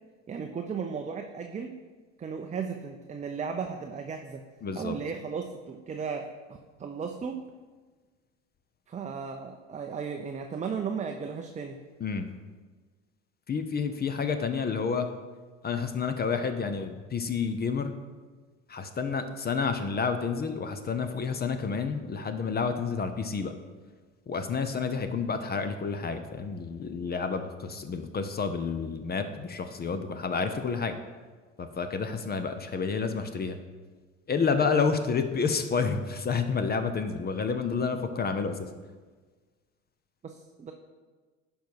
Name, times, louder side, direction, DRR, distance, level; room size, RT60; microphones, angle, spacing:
voice 1, 0.3-1.7 2.2-4.4 4.7-7.4 8.9-11.8 40.2-40.7, right 6 dB, 20° right, 4 dB, 0.6 m, -35 dB
voice 2, 4.6-5.0 12.0-12.3 13.5-15.1 15.6-17.9 18.7-23.5 24.3-30.9 31.6-33.6 34.3-38.6, left 5 dB, 25° left, 9 dB, 0.7 m, -29 dB
10.0 x 5.5 x 4.7 m, 1.4 s
hypercardioid pair, 80°, 38 cm